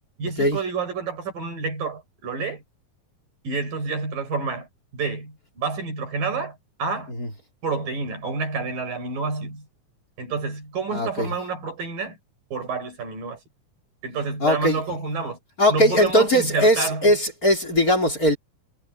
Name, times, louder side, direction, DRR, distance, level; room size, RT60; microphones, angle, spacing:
voice 1, 0.2-2.6 3.4-7.1 7.6-9.7 10.2-12.2 12.5-13.4 14.0-15.4 15.7-17.2, right 4 dB, 85° right, 8.1 m, -29 dB
voice 2, 10.9-11.3 14.4-14.8 15.6-18.4, equal, 25° left, 4.2 m, -19 dB
omnidirectional pair, 3.8 m